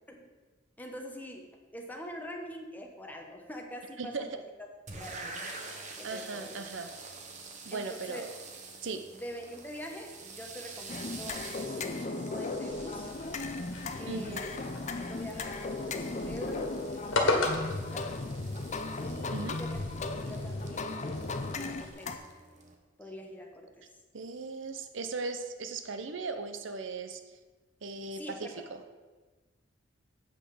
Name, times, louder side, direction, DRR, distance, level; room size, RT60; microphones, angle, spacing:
voice 1, 0.8-4.3 4.9-5.4 6.0-6.6 7.7-8.3 9.1-13.1 14.0-14.6 15.0-18.1 19.0-19.8 20.2-22.2 23.0-23.5 23.7-23.8 28.2-28.6, equal, 10° left, 1 dB, 1.2 m, -44 dB
voice 2, 4.0-4.4 6.0-6.9 7.6-8.3 8.8-9.1 14.1-14.4 19.3-19.6 24.1-27.2 27.8-28.8, right 3 dB, 70° right, 8 dB, 0.7 m, -38 dB
sound 1, 4.9-22.7, right 3 dB, 40° right, 1.2 m, -48 dB
sound 2, 10.9-22.2, left 3 dB, 40° left, 0.6 m, -36 dB
sound 3, 12.7-21.9, left 2 dB, 85° left, 1.6 m, -37 dB
8.0 x 6.2 x 6.9 m, 1.3 s
head